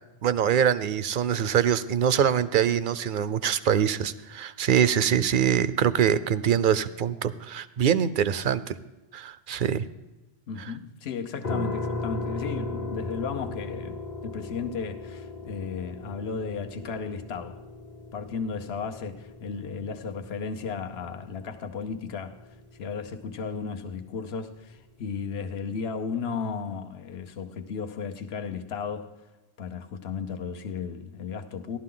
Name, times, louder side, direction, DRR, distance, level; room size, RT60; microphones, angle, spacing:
voice 1, 0.2-8.6 9.1-9.8, right 9 dB, 60° right, 0.6 m, -24 dB
voice 2, 10.5-17.6 18.1-22.4 22.7-29.2 29.6-31.8, left 5 dB, 75° left, 1.1 m, -34 dB
sound 1, 11.4-24.3, left 2 dB, 45° left, 0.9 m, -37 dB
15.0 x 12.0 x 3.8 m
omnidirectional pair, 1.1 m